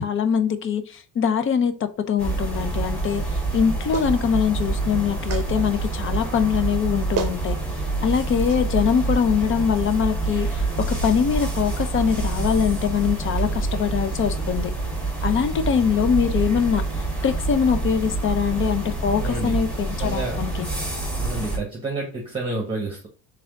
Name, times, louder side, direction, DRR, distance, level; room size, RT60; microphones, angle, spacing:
voice 1, 0.0-7.6 8.0-14.7 15.2-16.8 17.2-20.7, left 7 dB, 35° left, 0.5 m, -23 dB
sound 1, 2.2-21.6, right 2 dB, 5° left, 1.4 m, -27 dB
Clapping, 3.9-4.2 5.3-5.5 6.7-6.8 7.2-7.4 8.5-8.6, right 7 dB, 45° right, 0.6 m, -29 dB
voice 2, 19.2-19.5 20.0-20.4 21.2-23.1, right 2 dB, 15° right, 1.0 m, -29 dB
3.5 x 3.4 x 3.5 m
cardioid pair, 130°, 35 cm